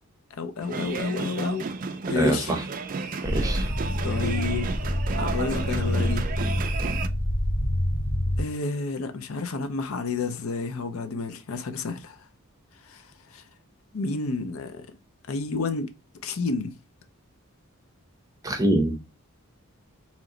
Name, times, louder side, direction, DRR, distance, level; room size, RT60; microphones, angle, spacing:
voice 1, 0.3-1.7 2.1-2.5 4.0-4.8 5.2-6.3 8.4-12.3 12.8-13.4 13.9-14.9 15.3-15.9 16.2-16.8, left 3 dB, 75° left, 0.5 m, -30 dB
sound 1, 0.6-7.1, right 4 dB, 40° right, 0.4 m, -33 dB
voice 2, 2.2-2.6 3.2-3.7 18.4-19.0, right 1 dB, 15° right, 0.7 m, -24 dB
sound 2, 3.2-8.4, left 1 dB, 45° left, 1.0 m, -27 dB
3.1 x 3.0 x 3.7 m
head